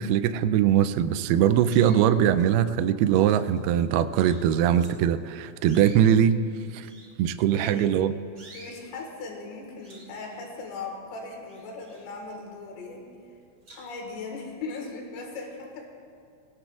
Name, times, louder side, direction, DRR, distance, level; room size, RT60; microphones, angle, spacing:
voice 1, 0.0-6.4 6.7-6.9 7.2-8.1, right 10 dB, 85° right, 11 dB, 2.2 m, -21 dB
sound 1, 0.8-1.1 1.6-2.5 3.1-5.1 5.6-8.0 8.3-8.8 9.3-9.5 9.8-11.0 11.3-12.6 13.0-13.1 13.6-14.1, right 2 dB, 35° right, 3.0 m, -51 dB
voice 2, 7.5-8.0 8.5-13.1 13.8-15.9, left 3 dB, 85° left, 1 dB, 3.8 m, -38 dB
20.5 x 17.5 x 2.4 m, 2.4 s
omnidirectional pair, 5.0 m